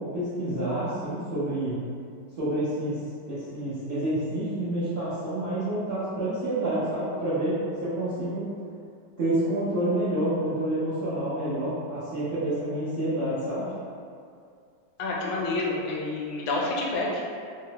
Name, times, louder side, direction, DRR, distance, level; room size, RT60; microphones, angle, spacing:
voice 1, 0.0-1.8 2.4-3.0 3.3-8.5 9.2-13.7, right 1 dB, 80° right, -12 dB, 0.5 m, -28 dB
voice 2, 15.0-17.3, left 2 dB, 85° left, -3 dB, 1.3 m, -28 dB
3.6 x 2.0 x 2.8 m, 2.3 s
omnidirectional pair, 2.1 m